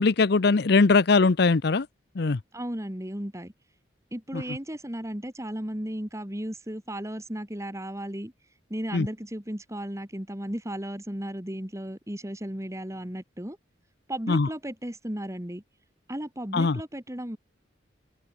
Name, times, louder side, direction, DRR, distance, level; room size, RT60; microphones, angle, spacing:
voice 1, 0.0-1.9 2.2-2.4 4.3-4.4 8.9-9.1 14.3-14.5 16.5-16.8, left 4 dB, 60° left, 0.6 m, -21 dB
voice 2, 2.5-3.5 4.1-8.3 8.7-13.6 14.1-15.6 16.1-17.4, right 1 dB, 15° right, 2.3 m, -35 dB
head